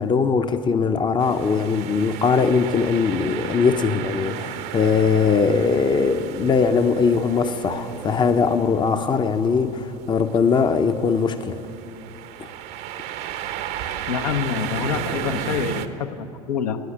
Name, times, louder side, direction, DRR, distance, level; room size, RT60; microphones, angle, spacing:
voice 1, 0.0-11.6 12.4-12.5, left 5 dB, 20° left, 10 dB, 0.7 m, -21 dB
sound 1, 1.2-15.9, right 10 dB, 50° right, 0.8 m, -34 dB
voice 2, 14.1-16.8, left 7 dB, 70° left, 7 dB, 0.8 m, -26 dB
14.0 x 9.9 x 8.4 m, 2.6 s
figure-of-eight pair, 70°, 21 cm